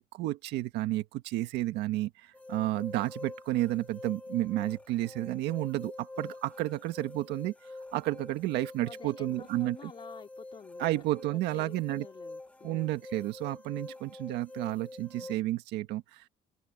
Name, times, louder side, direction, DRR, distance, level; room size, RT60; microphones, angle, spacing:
voice 1, 0.0-7.5 7.9-9.9 10.8-12.1 12.6-16.3, right 16 dB, 90° right, 1.6 m, -31 dB
sound 1, 2.3-15.4, left 2 dB, 10° left, 1.0 m, -46 dB
voice 2, 8.8-11.0 11.3-12.9, left 5 dB, 30° left, 2.6 m, -50 dB
cardioid pair, 110°, 17 cm